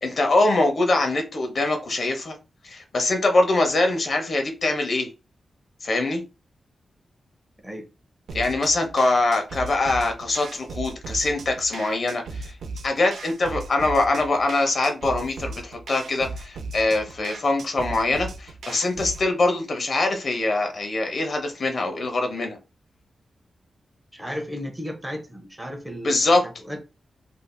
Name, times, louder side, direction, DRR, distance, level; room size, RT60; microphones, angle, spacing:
voice 1, 0.0-2.3 2.6-5.1 5.8-6.2 8.3-12.5 12.8-22.6 26.0-26.4, left 2 dB, 50° left, 0.8 m, -23 dB
sound 1, 8.3-19.3, right 3 dB, 85° right, 0.4 m, -37 dB
voice 2, 24.1-26.8, equal, 10° right, 0.8 m, -34 dB
3.3 x 2.6 x 2.3 m
wide cardioid pair, 115°, 0 cm